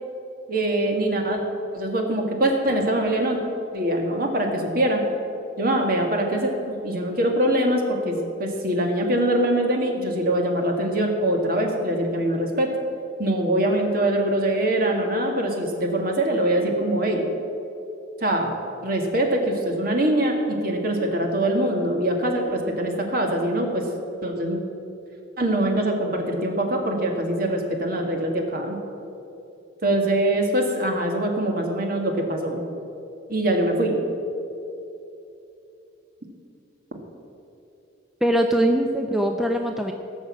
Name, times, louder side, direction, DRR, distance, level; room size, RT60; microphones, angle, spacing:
voice 1, 0.5-1.4 1.7-3.4 3.7-5.0 5.6-12.7 13.2-17.3 18.2-18.5 18.8-23.9 24.2-24.6 25.4-28.8 29.8-32.6 33.3-34.0, right 1 dB, 50° right, 2 dB, 1.9 m, -23 dB
voice 2, 38.2-39.9, right 1 dB, ahead, 3 dB, 0.5 m, -22 dB
17.0 x 6.5 x 7.6 m, 2.8 s
head